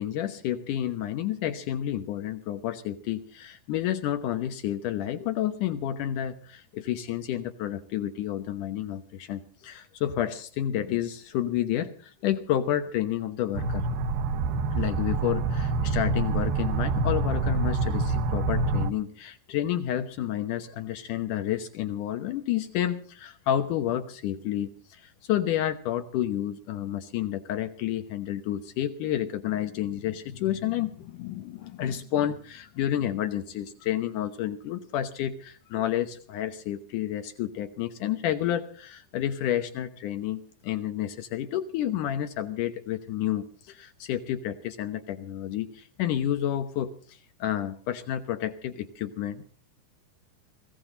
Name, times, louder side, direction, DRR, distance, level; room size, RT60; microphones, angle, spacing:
voice 1, 0.0-13.9 14.7-49.5, left 11 dB, 85° left, 8 dB, 1.8 m, -30 dB
sound 1, 13.5-18.9, right 3 dB, 75° right, 2.5 m, -26 dB
21.0 x 16.5 x 3.9 m, 0.44 s
omnidirectional pair, 5.3 m